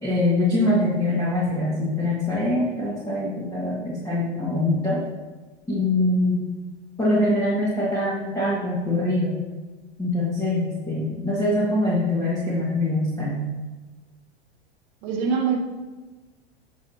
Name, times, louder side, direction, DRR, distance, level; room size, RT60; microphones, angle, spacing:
voice 1, 0.0-5.0 5.7-6.4 7.0-9.3 10.0-13.5, left 1 dB, 10° left, -8 dB, 1.8 m, -23 dB
voice 2, 15.0-15.6, right 6 dB, 45° right, 1 dB, 1.4 m, -23 dB
8.9 x 6.2 x 2.8 m, 1.2 s
hypercardioid pair, 95°, 32 cm